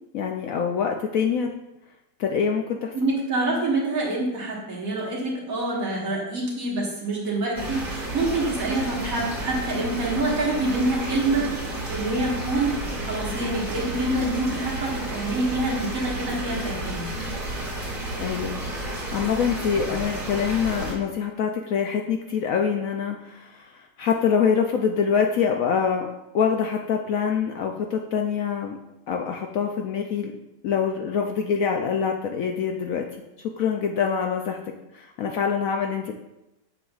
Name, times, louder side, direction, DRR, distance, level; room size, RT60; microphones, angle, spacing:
voice 1, 0.1-1.5 2.2-2.9 18.2-18.6 18.9-28.8 29.1-30.3 30.6-33.0 33.6-34.6 34.9-36.1, left 7 dB, 70° left, 3 dB, 0.8 m, -25 dB
voice 2, 2.9-12.7 13.0-17.4, right 2 dB, 55° right, -4 dB, 1.9 m, -26 dB
sound 1, 7.5-20.9, right 1 dB, 30° right, 2.6 m, -31 dB
7.3 x 6.9 x 2.4 m, 0.95 s
omnidirectional pair, 1.9 m